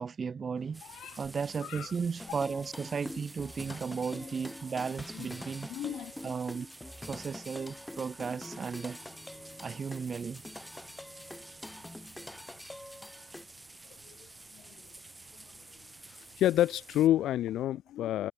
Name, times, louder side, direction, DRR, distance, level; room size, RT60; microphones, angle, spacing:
voice 1, 0.0-0.8 1.2-5.7 6.2-6.7 7.0-9.0 9.6-10.4, right 5 dB, 35° right, 0.9 m, -35 dB
sound 1, 0.6-17.7, right 9 dB, 55° right, 5.5 m, -61 dB
sound 2, 0.7-17.1, right 2 dB, 10° right, 5.1 m, -52 dB
voice 2, 0.8-1.2 1.6-1.9 5.1-5.3 5.7-6.1 14.1-14.2 14.5-14.8 16.1-18.3, left 13 dB, 70° left, 0.4 m, -29 dB
sound 3, 2.2-13.5, left 1 dB, 5° left, 0.9 m, -45 dB
cardioid pair, 100°, 0 cm